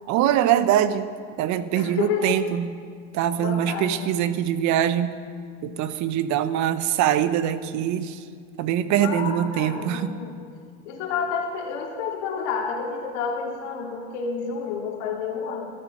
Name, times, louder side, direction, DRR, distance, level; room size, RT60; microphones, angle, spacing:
voice 1, 0.1-1.1 1.4-2.7 3.1-5.2 5.6-8.2 8.6-10.2, right 10 dB, 50° right, 13 dB, 0.9 m, -23 dB
voice 2, 1.7-2.4 3.4-4.0 8.9-10.3 10.8-15.7, left 6 dB, 70° left, -1 dB, 3.1 m, -30 dB
13.5 x 12.0 x 6.2 m, 2.1 s
supercardioid pair, 100°, 36 cm